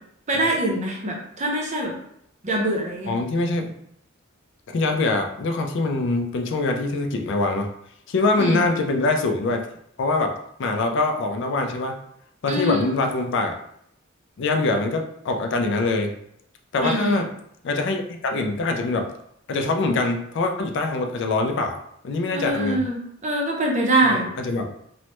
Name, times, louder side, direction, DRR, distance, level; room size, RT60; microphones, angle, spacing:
voice 1, 0.3-1.9 2.4-3.1 8.4-8.6 12.5-12.9 16.8-17.2 22.3-23.0 23.2-24.3, right 1 dB, 35° right, 0 dB, 0.6 m, -23 dB
voice 2, 3.1-3.7 4.7-7.7 8.1-9.7 10.0-10.3 10.6-12.0 12.4-13.6 14.4-16.1 16.7-17.3 17.6-19.1 19.5-22.9 24.0-24.7, left 3 dB, 60° left, 4 dB, 0.4 m, -24 dB
3.2 x 2.0 x 2.9 m, 0.72 s
head